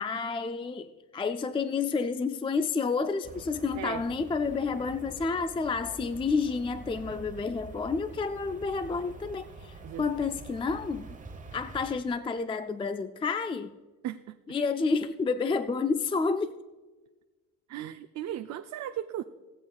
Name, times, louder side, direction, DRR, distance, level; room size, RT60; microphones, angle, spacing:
voice 1, 0.0-11.2 11.5-13.7 14.5-16.6, left 4 dB, 20° left, 0.4 m, -30 dB
sound 1, 3.2-12.0, right 3 dB, 25° right, 1.0 m, -46 dB
voice 2, 9.8-10.3 14.0-14.4 17.7-19.2, right 12 dB, 65° right, 0.5 m, -37 dB
18.5 x 7.7 x 2.3 m
cardioid pair, 90°, 30 cm